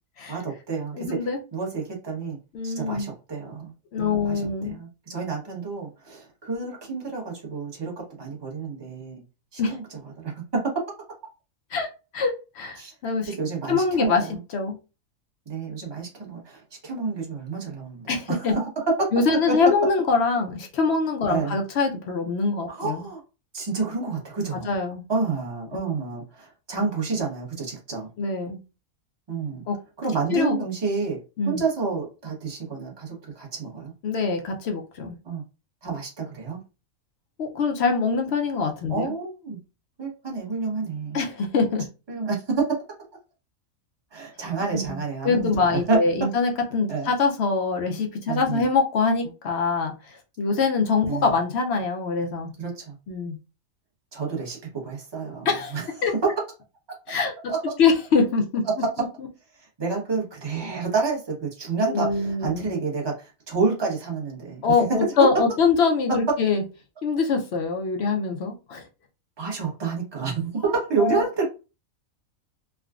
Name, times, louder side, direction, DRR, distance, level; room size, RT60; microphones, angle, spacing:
voice 1, 0.3-1.2 1.5-2.4 2.6-9.2 9.5-9.8 10.2-10.3 12.8-12.9 13.3-14.4 15.5-19.0 19.5-19.6 21.3-21.6 22.7-23.2 23.5-24.7 25.1-28.1 29.3-29.6 30.0-31.2 31.4-33.9 35.2-35.4 35.8-36.6 38.9-39.6 40.0-41.2 42.1-42.6 44.1-46.0 46.9-47.1 48.3-48.6 51.1-51.3 52.6-53.0 54.1-55.9 56.2-56.3 56.9-57.0 57.5-57.7 59.6-64.7 65.1-65.3 69.4-71.4, right 4 dB, 20° right, -2 dB, 0.8 m, -29 dB
voice 2, 0.9-1.4 2.5-3.1 3.9-4.8 9.6-9.8 11.7-11.9 12.1-13.3 13.7-14.8 18.1-18.6 19.1-23.1 24.7-25.0 28.2-28.6 29.7-29.8 30.3-30.6 31.4-31.6 34.0-35.2 37.4-39.1 41.1-41.9 44.7-52.5 53.1-53.4 55.5-55.8 56.0-56.1 57.1-57.3 57.8-58.6 61.9-62.7 64.6-66.6 67.0-68.9 71.0-71.2, left 4 dB, 65° left, 3 dB, 0.7 m, -24 dB
3.4 x 2.2 x 2.3 m, 0.31 s
omnidirectional pair, 1.5 m